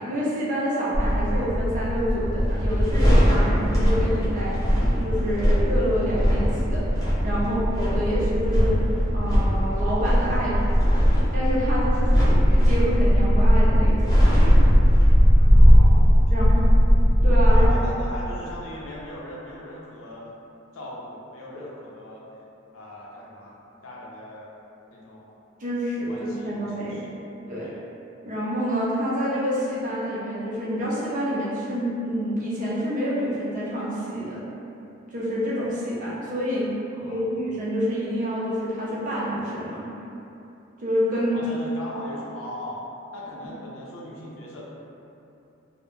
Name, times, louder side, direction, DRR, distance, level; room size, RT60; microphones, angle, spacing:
voice 1, 0.0-6.8 7.2-8.8 9.1-10.9 11.3-14.2 16.3-16.6 17.2-17.7 25.6-27.0 27.5-27.7 28.2-34.5 35.1-36.7 36.9-39.9 40.8-41.4, equal, 40° right, -8 dB, 0.6 m, -27 dB
sound 1, 0.9-17.7, equal, 15° left, 0.6 m, -19 dB
voice 2, 15.3-16.1 16.4-16.7 17.5-20.3 20.7-22.2 22.7-24.5 24.9-25.4 26.1-27.1 27.6-27.8 36.9-37.4 41.3-42.8 43.1-44.6, left 1 dB, 90° left, -4 dB, 0.5 m, -39 dB
2.2 x 2.0 x 3.1 m, 2.8 s
head